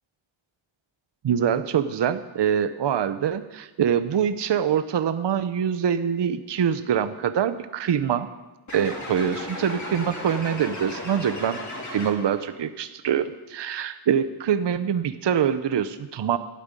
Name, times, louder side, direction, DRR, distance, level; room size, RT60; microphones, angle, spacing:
voice 1, 1.2-8.3 8.7-11.6 11.9-16.4, right 8 dB, 60° right, 12 dB, 0.7 m, -24 dB
sound 1, 8.7-12.5, left 2 dB, 35° left, 2.7 m, -35 dB
12.0 x 8.9 x 9.0 m, 1.1 s
wide cardioid pair, 155°, 49 cm